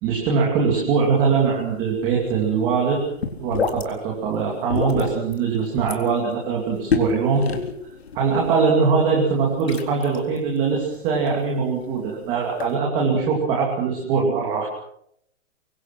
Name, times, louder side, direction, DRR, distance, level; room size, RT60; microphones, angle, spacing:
voice 1, 0.0-3.0 3.4-7.4 8.1-14.7, right 5 dB, 15° right, -2 dB, 2.7 m, -22 dB
sound 1, 1.0-12.8, left 4 dB, 55° left, 3.8 m, -31 dB
25.5 x 23.5 x 6.1 m, 0.72 s
hypercardioid pair, 180°, 37 cm